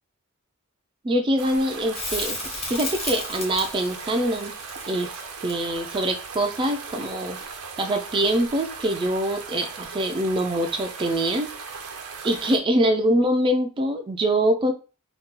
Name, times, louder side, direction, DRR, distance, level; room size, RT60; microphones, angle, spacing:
voice 1, 1.0-2.4 2.7-4.5 4.9-5.1 5.4-7.4 7.8-11.5 12.2-14.7, right 1 dB, 20° right, 4 dB, 0.3 m, -24 dB
sound 1, 1.4-12.6, right 5 dB, 85° right, 0.6 m, -38 dB
Crackle, 1.9-7.1 9.8-9.9, left 2 dB, 30° left, 1.0 m, -34 dB
2.8 x 2.2 x 3.6 m, 0.34 s
head